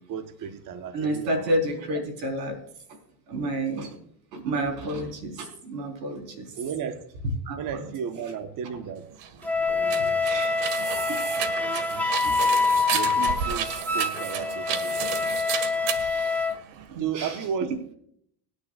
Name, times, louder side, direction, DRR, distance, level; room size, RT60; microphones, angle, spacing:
voice 1, 0.0-1.6 3.3-3.5 6.6-7.1 7.6-9.3 9.7-10.3 11.9-12.4 12.9-15.0 17.0-17.9, right 7 dB, 40° right, 1.3 m, -34 dB
voice 2, 0.9-2.6 3.3-4.0 4.3-6.5 7.5-7.8 10.2-10.7 11.1-11.2 11.7-12.3 16.9-17.3, right 1 dB, 90° right, 4.5 m, -30 dB
sound 1, 9.1-17.0, right 8 dB, 55° right, 1.9 m, -33 dB
Wind instrument woodwind instrument, 9.4-16.5, left 4 dB, 5° left, 0.8 m, -26 dB
25.0 x 9.9 x 2.5 m
supercardioid pair, 100°, 49 cm